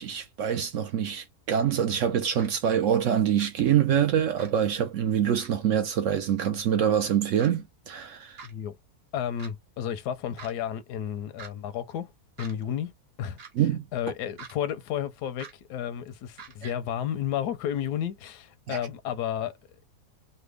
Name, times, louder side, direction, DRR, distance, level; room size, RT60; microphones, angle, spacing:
voice 1, 0.0-8.4 13.6-13.8 16.6-16.7 18.7-18.8, right 9 dB, 65° right, 0.8 m, -25 dB
sound 1, 2.4-2.5 3.4-3.5 4.4-4.5 5.4-5.5 6.4-6.5 7.4-7.5 8.4-8.5 9.4-9.5 10.4-10.5 11.4-11.5 12.4-12.5 13.4-13.5 14.4-14.5 15.4-15.5 16.4-16.5, right 6 dB, 45° right, 1.0 m, -44 dB
voice 2, 8.4-8.8 9.1-12.1 12.4-12.9 13.2-19.6, left 10 dB, 90° left, 1.2 m, -32 dB
3.3 x 2.1 x 3.2 m
omnidirectional pair, 1.7 m